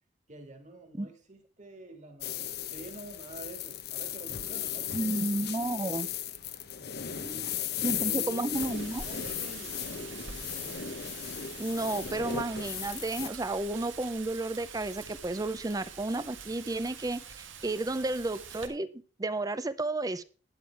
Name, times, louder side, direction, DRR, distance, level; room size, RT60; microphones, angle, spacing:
voice 1, 0.3-5.2 5.6-6.0 7.0-8.5 9.1-9.9, right 2 dB, 40° right, 5 dB, 2.3 m, -48 dB
sound 1, 2.2-13.3, left 9 dB, 55° left, 0.8 m, -36 dB
voice 2, 4.9-6.1 7.2-7.5 7.8-9.0 11.6-20.2, right 2 dB, 20° right, 14 dB, 0.5 m, -32 dB
Wind, 8.5-18.7, right 6 dB, 90° right, 1.7 m, -45 dB
11.0 x 8.9 x 4.7 m, 0.39 s
head